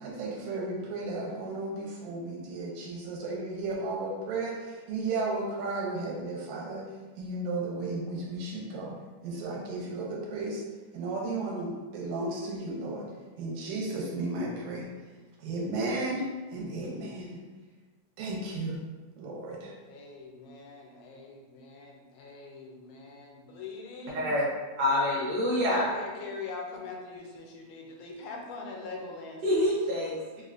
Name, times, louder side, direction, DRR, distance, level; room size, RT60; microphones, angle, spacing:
voice 1, 0.0-6.8 7.2-9.0 9.2-10.6 10.9-13.1 13.4-14.9 15.4-17.4 18.2-18.8 19.2-19.7, right 2 dB, 85° right, -2 dB, 2.0 m, -34 dB
voice 2, 19.8-24.2 25.7-29.7, left 3 dB, 85° left, 0 dB, 2.0 m, -42 dB
voice 3, 24.8-25.9 29.4-30.4, left 1 dB, 70° right, -6 dB, 1.6 m, -26 dB
5.4 x 2.1 x 2.4 m, 1.3 s
omnidirectional pair, 3.4 m